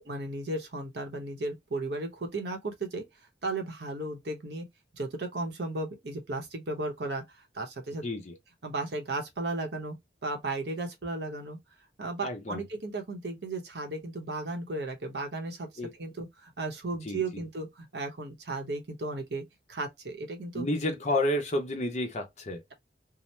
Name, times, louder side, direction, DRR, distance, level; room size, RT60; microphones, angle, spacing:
voice 1, 0.1-3.0 3.4-4.7 4.9-8.0 8.6-9.9 10.2-11.6 12.0-15.7 16.0-19.4 19.7-20.7, right 2 dB, 65° right, 0.8 m, -35 dB
voice 2, 8.0-8.3 12.2-12.6 15.8-15.9 17.0-17.2 20.5-22.6, left 1 dB, 40° left, 0.7 m, -30 dB
2.7 x 2.0 x 3.2 m
head